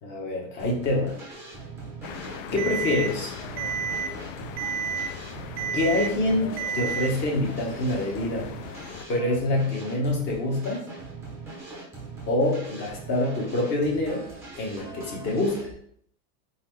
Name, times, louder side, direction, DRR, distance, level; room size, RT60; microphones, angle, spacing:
voice 1, 0.0-1.2 2.5-3.4 5.7-8.5 9.1-10.8 12.3-14.3 14.5-15.7, left 2 dB, 25° left, 0 dB, 0.8 m, -26 dB
sound 1, 0.6-15.7, right 3 dB, 5° right, 0.6 m, -41 dB
sound 2, 2.0-9.1, left 7 dB, 50° left, 0.5 m, -40 dB
Alarm, 2.6-3.1 3.6-4.1 4.6-5.1 5.6-6.1 6.6-7.1, right 7 dB, 80° right, 1.0 m, -29 dB
4.1 x 4.0 x 3.1 m, 0.63 s
supercardioid pair, 165°, 49 cm